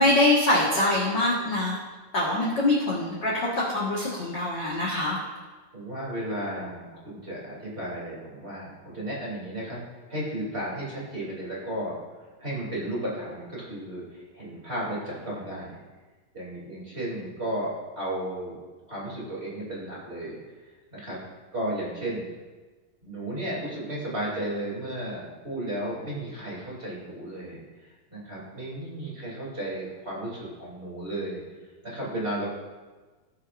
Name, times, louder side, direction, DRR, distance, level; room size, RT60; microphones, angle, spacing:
voice 1, 0.0-1.8 2.1-5.2, left 1 dB, 50° left, -6 dB, 1.4 m, -24 dB
voice 2, 5.7-9.8 10.1-12.0 12.4-15.8 16.3-18.6 18.9-20.4 20.9-21.2 21.5-22.2 23.0-27.6 28.1-31.4 31.8-32.5, right 1 dB, 20° right, -6 dB, 2.8 m, -34 dB
18.5 x 7.0 x 2.6 m, 1.3 s
omnidirectional pair, 4.2 m